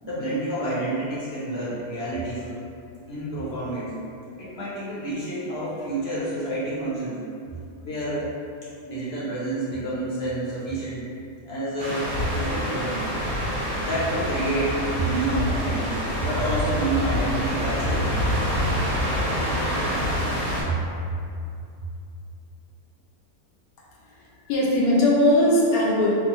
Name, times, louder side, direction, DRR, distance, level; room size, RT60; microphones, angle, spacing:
voice 1, 0.0-2.5 3.1-3.9 4.4-7.2 7.8-8.3 8.8-11.1 11.5-12.9 13.8-18.3 20.6-20.7, right 1 dB, 50° left, -9 dB, 0.8 m, -29 dB
sound 1, 11.8-20.6, equal, 25° right, 0.8 m, -26 dB
voice 2, 24.1-26.1, left 1 dB, 80° left, -4 dB, 1.1 m, -20 dB
3.2 x 2.4 x 2.9 m, 2.5 s
omnidirectional pair, 1.6 m